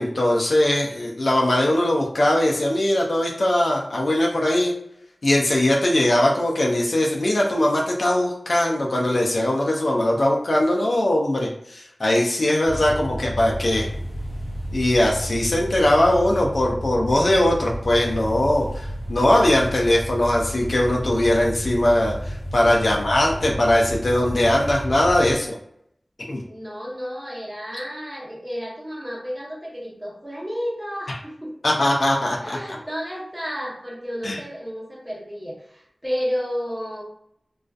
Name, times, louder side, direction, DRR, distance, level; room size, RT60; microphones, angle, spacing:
voice 1, 0.0-4.7 5.2-13.9 14.7-25.6 26.3-26.4 31.6-32.6 34.2-34.4, left 1 dB, 80° left, -1 dB, 0.4 m, -20 dB
sound 1, 12.6-25.3, equal, 30° left, 0.8 m, -32 dB
voice 2, 22.7-23.5 26.4-31.6 32.4-37.0, equal, 20° right, -3 dB, 0.9 m, -32 dB
2.4 x 2.3 x 2.3 m, 0.71 s
wide cardioid pair, 40°, 0 cm